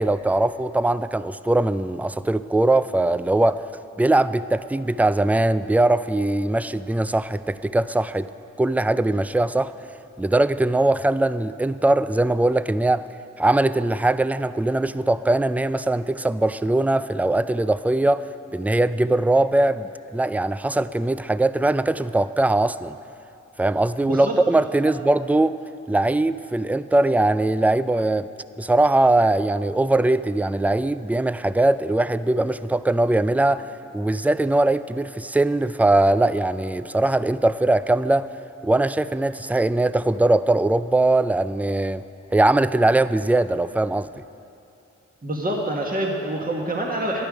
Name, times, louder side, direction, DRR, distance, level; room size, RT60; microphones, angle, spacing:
voice 1, 0.0-3.6 4.0-8.3 8.6-9.7 10.2-13.0 13.4-23.0 23.6-25.6 25.9-28.3 28.6-33.6 33.9-38.3 38.6-42.0 42.3-44.1, right 2 dB, 5° right, 14 dB, 0.4 m, -21 dB
voice 2, 24.0-24.4 24.9-25.0 45.2-47.3, right 1 dB, 30° right, -1 dB, 1.7 m, -26 dB
12.5 x 11.5 x 5.0 m, 2.7 s
cardioid pair, 40°, 30 cm